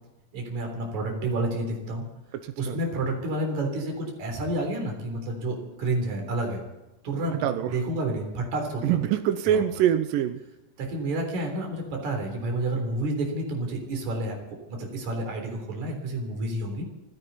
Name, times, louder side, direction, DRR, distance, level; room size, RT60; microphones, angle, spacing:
voice 1, 0.3-2.0 2.6-6.6 7.0-9.0 9.4-9.6 10.8-14.4 14.7-16.8, right 2 dB, 60° right, 2 dB, 4.9 m, -30 dB
voice 2, 2.3-2.8 7.3-7.8 8.8-10.4, right 10 dB, 90° right, 9 dB, 2.5 m, -25 dB
29.0 x 11.0 x 4.3 m, 0.98 s
omnidirectional pair, 3.9 m